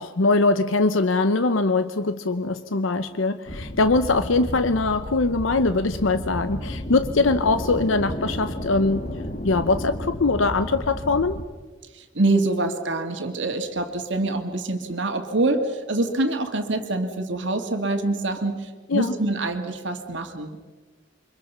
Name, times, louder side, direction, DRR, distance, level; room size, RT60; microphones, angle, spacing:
voice 1, 0.0-9.0 9.4-11.4 18.9-19.1, left 3 dB, 80° left, 11 dB, 0.8 m, -22 dB
sound 1, 3.5-11.4, left 1 dB, 40° left, 1.6 m, -33 dB
voice 2, 11.9-20.7, right 2 dB, 65° right, 5 dB, 2.1 m, -25 dB
29.0 x 24.5 x 5.7 m, 1.4 s
head